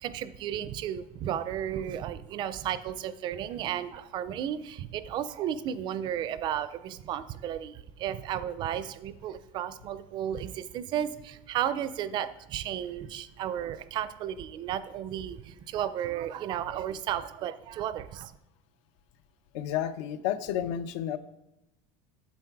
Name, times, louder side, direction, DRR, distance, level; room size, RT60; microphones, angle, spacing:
voice 1, 0.0-18.3, right 10 dB, 30° right, 14 dB, 0.4 m, -33 dB
voice 2, 19.5-21.2, left 10 dB, 85° left, 12 dB, 0.7 m, -31 dB
9.4 x 7.5 x 4.6 m, 0.91 s
cardioid pair, 175°, 15 cm